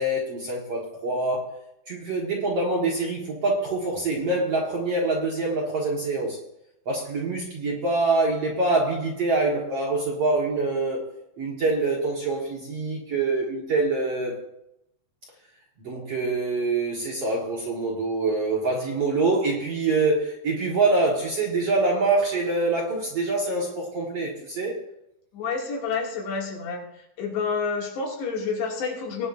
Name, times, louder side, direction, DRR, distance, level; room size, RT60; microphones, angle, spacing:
voice 1, 0.0-1.5 1.9-6.4 6.9-11.0 11.4-14.4 15.8-24.8, right 3 dB, 50° right, -3 dB, 1.9 m, -25 dB
voice 2, 25.3-26.8 27.2-29.3, left 5 dB, 80° left, -2 dB, 4.7 m, -29 dB
19.0 x 10.0 x 2.6 m, 0.81 s
omnidirectional pair, 4.8 m